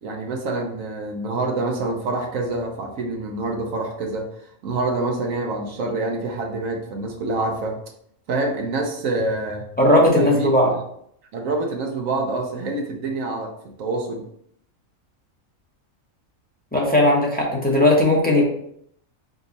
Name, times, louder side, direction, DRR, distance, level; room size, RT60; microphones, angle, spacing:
voice 1, 0.0-4.3 4.6-7.8 8.3-9.7 10.2-10.5 11.3-13.5 13.8-14.2, right 2 dB, 75° right, 1 dB, 1.1 m, -26 dB
voice 2, 9.8-10.7 16.7-18.4, left 1 dB, 10° left, -4 dB, 0.9 m, -17 dB
5.0 x 2.4 x 3.9 m, 0.68 s
omnidirectional pair, 1.4 m